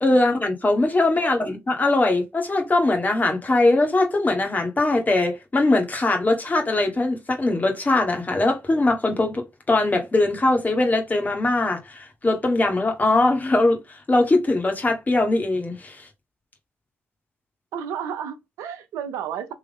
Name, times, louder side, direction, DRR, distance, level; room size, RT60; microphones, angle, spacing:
voice 1, 0.0-16.1, left 2 dB, 30° left, 1.6 m, -21 dB
voice 2, 17.7-19.5, right 8 dB, 85° right, 0.7 m, -32 dB
3.7 x 2.9 x 3.6 m
supercardioid pair, 50°, 5 cm